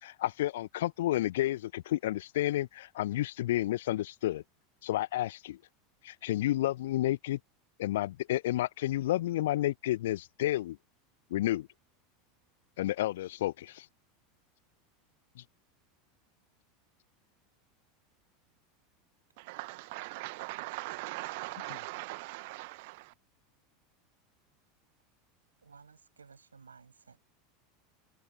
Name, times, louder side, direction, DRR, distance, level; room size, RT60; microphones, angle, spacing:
voice 1, 0.0-4.4 4.8-5.6 6.0-7.4 7.8-10.8 11.3-11.7 12.8-13.9 15.4-15.5, left 14 dB, 60° left, 0.7 m, -31 dB
voice 2, 19.4-23.1, right 25 dB, 55° right, 1.0 m, -40 dB
voice 3, 25.6-27.3, right 5 dB, 80° right, 6.4 m, -56 dB
figure-of-eight pair, 80°, 0 cm